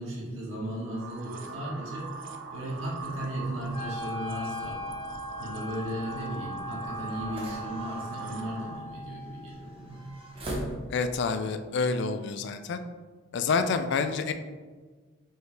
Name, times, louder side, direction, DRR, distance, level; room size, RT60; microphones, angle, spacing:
voice 1, 0.0-4.8 5.4-10.0, right 1 dB, 80° right, -4 dB, 1.4 m, -36 dB
sound 1, 0.8-8.9, right 4 dB, 60° right, 0.4 m, -42 dB
sound 2, 3.6-11.3, right 1 dB, 30° right, 0.7 m, -43 dB
Wind instrument woodwind instrument, 3.7-9.8, left 2 dB, 25° left, 0.8 m, -40 dB
voice 2, 10.9-12.8 13.3-14.3, left 4 dB, 60° left, 9 dB, 0.3 m, -28 dB
4.6 x 3.2 x 3.2 m, 1.4 s
head